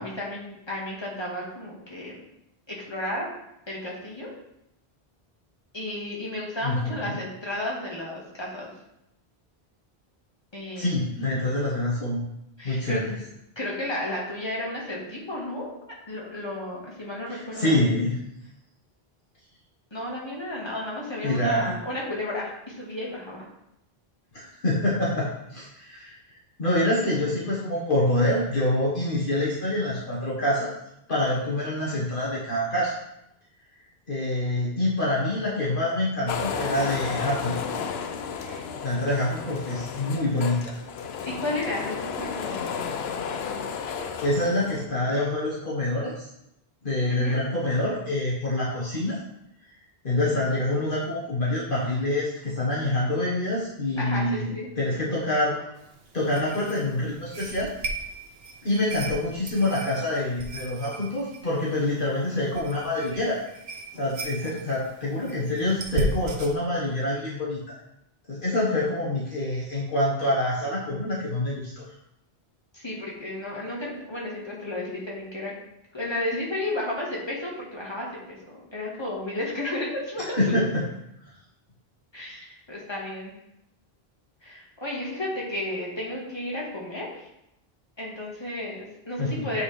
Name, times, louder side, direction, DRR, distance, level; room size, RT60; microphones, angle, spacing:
voice 1, 0.0-2.2 2.7-3.4 3.7-4.3 5.7-8.7 10.5-10.9 12.6-13.0 13.6-15.7 16.1-17.8 19.9-23.4 38.4-38.6 41.3-42.6 47.1-47.4 54.0-54.7 72.7-75.5 75.9-80.6 82.1-83.3 84.4-87.3 88.0-89.6, left 1 dB, 25° left, -4 dB, 1.6 m, -33 dB
voice 2, 6.6-7.2 10.8-12.2 12.6-13.2 17.3-18.2 21.2-21.8 24.3-26.1 26.6-30.7 31.1-33.0 34.1-37.5 38.8-40.8 43.9-46.3 46.8-49.2 50.0-55.7 56.1-57.7 58.6-63.4 63.9-67.6 68.3-71.9 80.4-80.8 89.2-89.5, left 1 dB, 55° left, -6 dB, 1.5 m, -26 dB
sound 1, 36.3-44.9, left 6 dB, 85° left, 0.8 m, -33 dB
sound 2, 55.8-66.5, right 2 dB, 75° right, 1.0 m, -36 dB
8.5 x 4.2 x 3.3 m, 0.81 s
omnidirectional pair, 1.0 m